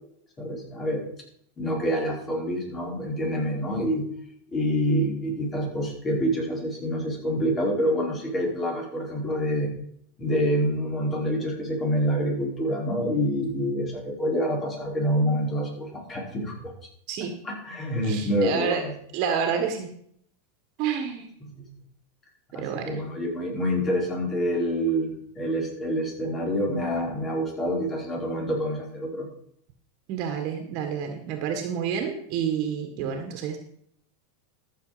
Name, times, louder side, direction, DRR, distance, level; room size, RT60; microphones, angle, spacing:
voice 1, 0.4-1.0 1.6-4.1 4.5-9.7 10.2-16.6 17.4-18.9 21.5-21.6 22.5-29.3, equal, 25° left, -1 dB, 5.0 m, -27 dB
voice 2, 18.0-18.8 19.1-19.9 20.8-21.3 22.6-23.0 30.1-33.6, right 7 dB, 55° right, 5 dB, 1.7 m, -29 dB
14.0 x 6.8 x 5.1 m, 0.69 s
hypercardioid pair, 110°, 0 cm